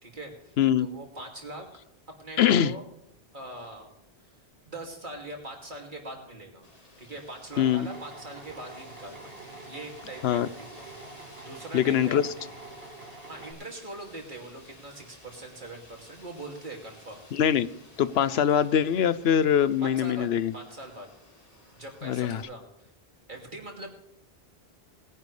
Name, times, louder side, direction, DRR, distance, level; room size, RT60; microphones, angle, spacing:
voice 1, 0.0-1.7 2.1-2.8 3.3-3.9 4.6-6.7 7.0-12.6 13.3-17.2 19.8-21.1 21.7-22.9 23.3-24.0, right 2 dB, 50° right, 1 dB, 2.7 m, -42 dB
voice 2, 2.4-2.7 7.6-7.9 10.2-10.5 11.7-12.2 17.3-17.7 18.0-20.5 22.0-22.4, left 9 dB, 80° left, 15 dB, 0.9 m, -23 dB
Wind, 6.6-22.4, left 1 dB, 35° left, 3.1 m, -54 dB
Drill, 7.5-13.5, right 2 dB, 65° right, 1.8 m, -46 dB
20.5 x 10.5 x 3.3 m, 0.77 s
omnidirectional pair, 1.1 m